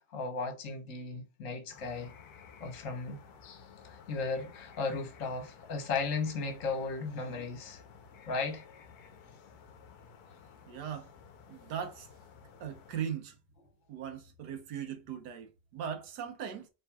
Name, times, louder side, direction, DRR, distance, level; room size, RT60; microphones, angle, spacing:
voice 1, 0.0-2.1 2.6-3.2 3.8-7.8 8.3-8.6, left 4 dB, 50° left, 1.4 m, -35 dB
sound 1, 1.7-13.1, left 6 dB, 65° left, 1.2 m, -54 dB
voice 2, 10.6-11.1 11.5-12.1 12.6-13.4 13.9-16.7, right 8 dB, 70° right, 1.4 m, -39 dB
4.4 x 3.5 x 2.2 m
omnidirectional pair, 1.9 m